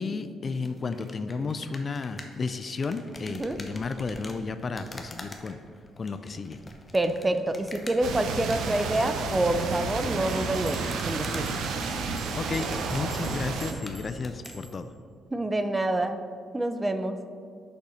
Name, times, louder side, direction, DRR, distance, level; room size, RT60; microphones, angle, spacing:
voice 1, 0.0-5.6 6.0-6.6 12.4-14.9, left 4 dB, 40° left, 10 dB, 0.4 m, -33 dB
sound 1, 0.6-14.6, left 2 dB, 20° left, 1.0 m, -47 dB
voice 2, 6.9-11.5 15.3-16.2 16.5-17.2, right 1 dB, 15° right, 9 dB, 0.5 m, -27 dB
sound 2, 8.0-13.7, right 4 dB, 80° right, 0.7 m, -31 dB
sound 3, 10.3-15.0, right 1 dB, ahead, 1.1 m, -50 dB
6.6 x 5.4 x 5.7 m, 2.2 s
cardioid pair, 90°, 0 cm